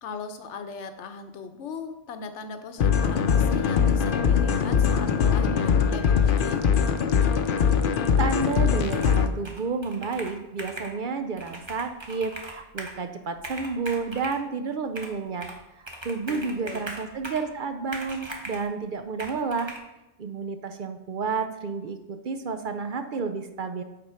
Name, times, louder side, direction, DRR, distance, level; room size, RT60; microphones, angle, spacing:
voice 1, 0.0-6.7 16.3-16.9, left 4 dB, 85° left, 8 dB, 1.1 m, -38 dB
sound 1, 2.8-9.3, left 7 dB, 55° left, 0.7 m, -22 dB
voice 2, 7.8-15.5 16.0-19.7 20.2-23.8, right 4 dB, 55° right, 8 dB, 0.7 m, -31 dB
Computer keyboard, 8.8-9.2 9.4-11.0 11.4-13.0 13.4-14.4 15.0-15.6 15.9-17.5 17.9-18.7 19.2-19.8, right 1 dB, 25° right, 1.0 m, -40 dB
7.6 x 4.6 x 5.6 m, 0.94 s
omnidirectional pair, 1.2 m